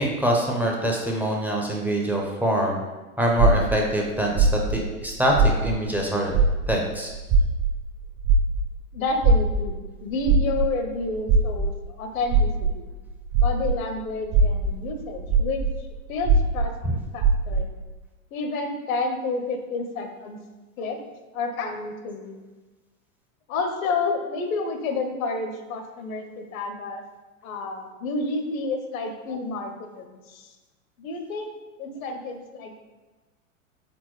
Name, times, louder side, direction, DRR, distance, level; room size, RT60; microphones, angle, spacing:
voice 1, 0.0-2.8 3.2-6.3 6.7-7.1, right 1 dB, 5° right, -1 dB, 0.4 m, -24 dB
sound 1, 3.4-6.0 6.3-13.9 14.2-17.8, right 3 dB, 55° right, 0.8 m, -22 dB
voice 2, 8.9-12.9 13.4-15.6 16.1-16.7 17.1-17.7 18.3-20.4 20.8-21.0 21.3-22.4 23.5-27.0 27.4-30.5 31.0-31.5 31.8-32.8, left 3 dB, 75° left, 6 dB, 0.8 m, -30 dB
4.3 x 3.9 x 3.1 m, 1.2 s
hypercardioid pair, 110°, 42 cm